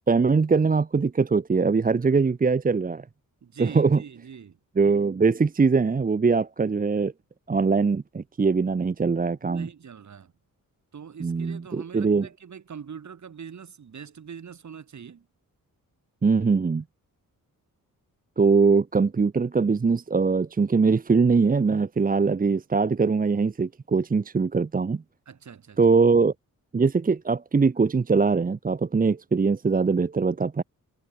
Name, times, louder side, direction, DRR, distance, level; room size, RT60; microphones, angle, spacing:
voice 1, 0.1-3.0 3.6-4.0 4.8-7.1 7.5-9.7 11.2-12.3 16.2-16.8 18.4-25.0 25.8-26.3 26.7-30.6, right 4 dB, 25° right, 0.9 m, -22 dB
voice 2, 3.4-4.6 9.4-10.3 10.9-15.3 25.3-25.8, right 7 dB, 55° right, 5.0 m, -42 dB
wide cardioid pair, 145°, 34 cm